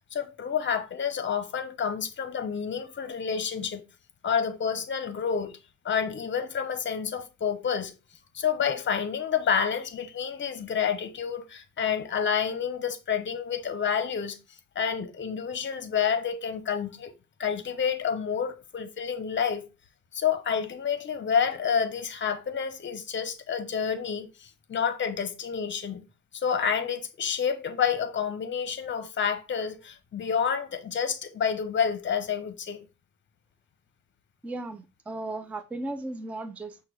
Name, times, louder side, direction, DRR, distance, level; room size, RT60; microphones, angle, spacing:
voice 1, 0.1-3.8 4.2-5.6 5.8-7.9 8.3-14.4 14.8-17.1 17.4-19.7 20.1-26.0 26.3-32.8, left 7 dB, 40° left, 0.7 m, -29 dB
voice 2, 34.4-36.8, right 2 dB, 5° right, 0.4 m, -36 dB
5.8 x 2.2 x 3.2 m
cardioid pair, 90°, 30 cm